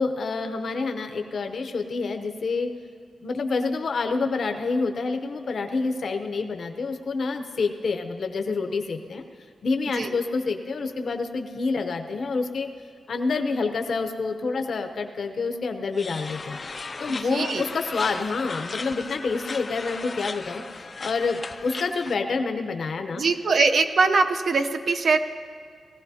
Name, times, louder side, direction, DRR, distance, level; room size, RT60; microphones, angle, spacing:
voice 1, 0.0-2.7 3.2-9.2 9.6-12.7 13.1-16.6 17.0-20.6 21.0-23.2, left 4 dB, 60° left, 5 dB, 0.7 m, -27 dB
sound 1, 16.0-22.2, left 4 dB, 35° left, 0.4 m, -36 dB
voice 2, 17.3-17.7 23.2-25.2, right 4 dB, 55° right, 7 dB, 0.6 m, -22 dB
19.0 x 16.0 x 2.8 m, 2.1 s
wide cardioid pair, 125°, 0 cm